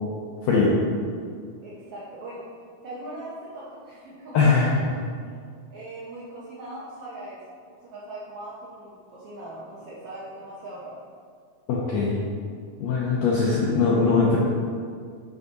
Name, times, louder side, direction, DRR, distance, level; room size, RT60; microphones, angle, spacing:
voice 1, 0.4-0.7 4.3-4.8 11.7-12.2 12.8-14.4, left 4 dB, 80° left, -5 dB, 1.5 m, -21 dB
voice 2, 1.6-2.5 2.8-5.4 5.7-7.4 7.8-11.0, right 1 dB, 85° right, -7 dB, 1.3 m, -40 dB
10.5 x 3.7 x 4.0 m, 2.1 s
omnidirectional pair, 4.1 m